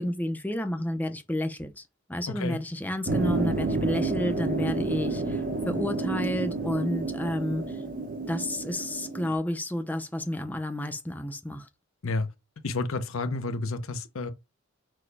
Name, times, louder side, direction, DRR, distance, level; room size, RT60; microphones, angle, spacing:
voice 1, 0.0-1.8 2.1-7.8 8.3-11.7, left 1 dB, 10° left, 0.5 m, -31 dB
sound 1, 3.1-9.3, right 3 dB, 40° right, 0.7 m, -30 dB
voice 2, 12.6-14.3, left 3 dB, 80° left, 0.7 m, -30 dB
6.1 x 2.2 x 3.2 m
head